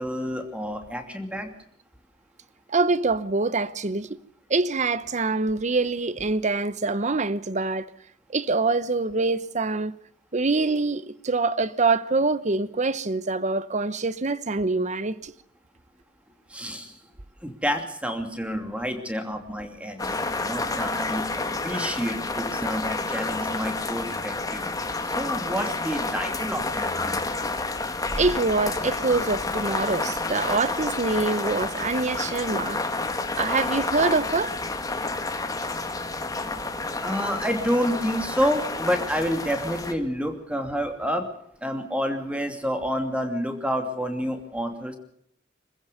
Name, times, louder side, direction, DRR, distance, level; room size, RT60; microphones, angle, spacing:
voice 1, 0.0-1.5 16.5-17.0 17.4-24.7 25.0-27.2 32.5-32.7 37.0-41.3 41.6-45.0, equal, 5° right, 2.8 m, -29 dB
voice 2, 2.7-4.1 4.5-7.9 8.3-9.9 10.3-15.3 28.2-32.8 33.4-34.5, right 3 dB, 40° right, 0.9 m, -25 dB
sound 1, 20.0-39.9, left 3 dB, 20° left, 1.7 m, -29 dB
26.0 x 15.5 x 6.8 m
head